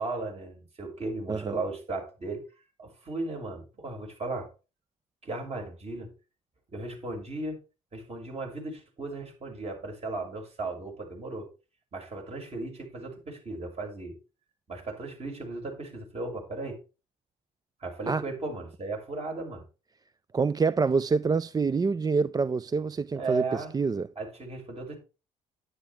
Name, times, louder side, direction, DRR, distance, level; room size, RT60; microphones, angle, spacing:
voice 1, 0.0-2.5 2.8-4.5 5.2-6.1 6.7-7.6 7.9-11.5 11.9-14.2 14.7-16.8 17.8-19.6 23.1-23.7 24.1-25.0, right 2 dB, 40° right, 6.5 m, -36 dB
voice 2, 20.3-24.1, right 4 dB, 25° right, 0.5 m, -26 dB
10.5 x 10.0 x 3.6 m
hypercardioid pair, 60°, 16 cm